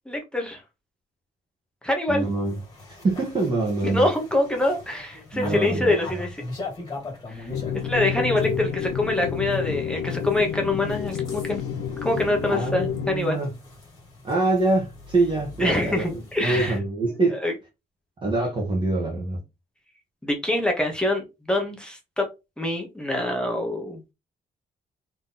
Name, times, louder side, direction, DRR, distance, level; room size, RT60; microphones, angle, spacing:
voice 1, 0.1-0.6 1.8-2.3 3.8-6.4 7.3-7.5 7.8-11.6 12.0-13.4 15.6-16.8 17.3-17.5 20.2-22.2 22.6-24.0, left 1 dB, 5° left, 0.9 m, -25 dB
voice 2, 2.1-2.6 3.0-4.1 5.3-6.0 12.5-13.5 14.2-17.4 18.2-19.4, right 2 dB, 30° right, 1.1 m, -25 dB
sound 1, 2.2-16.8, left 2 dB, 25° left, 2.2 m, -40 dB
sound 2, 7.5-13.2, left 8 dB, 90° left, 0.8 m, -29 dB
4.1 x 3.0 x 3.8 m
cardioid pair, 180°, 18 cm